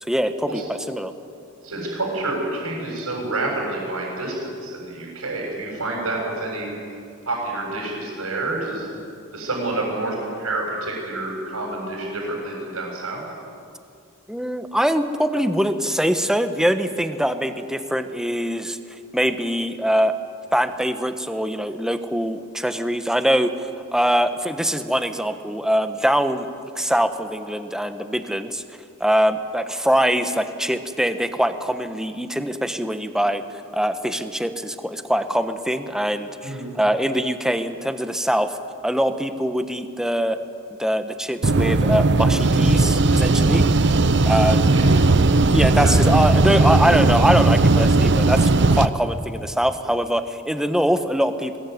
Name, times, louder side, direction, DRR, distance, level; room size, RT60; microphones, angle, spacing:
voice 1, 0.0-1.1 14.3-18.8 19.1-20.1 20.5-26.5 26.7-28.6 29.0-33.4 33.7-38.6 38.8-40.4 40.8-43.6 44.2-44.7 45.5-51.6, equal, 5° right, 9 dB, 1.1 m, -23 dB
voice 2, 1.6-6.7 7.3-8.9 9.3-13.2 36.4-36.7 44.7-44.8 45.7-46.0, right 2 dB, 70° right, -3 dB, 7.0 m, -28 dB
sound 1, 41.4-48.9, right 2 dB, 55° right, 0.8 m, -17 dB
22.0 x 20.5 x 9.5 m, 2.5 s
head